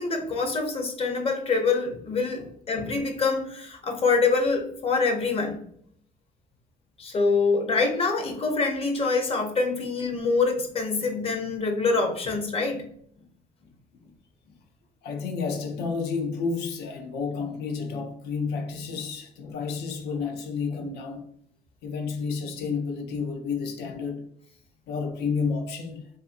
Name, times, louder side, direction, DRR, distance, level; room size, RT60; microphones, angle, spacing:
voice 1, 0.0-5.6 7.0-12.8, left 4 dB, 35° left, 0.6 m, -25 dB
voice 2, 15.0-21.3 21.8-24.2 24.9-26.1, left 5 dB, 80° left, 0.6 m, -31 dB
2.5 x 2.5 x 2.5 m
cardioid pair, 110°, 17 cm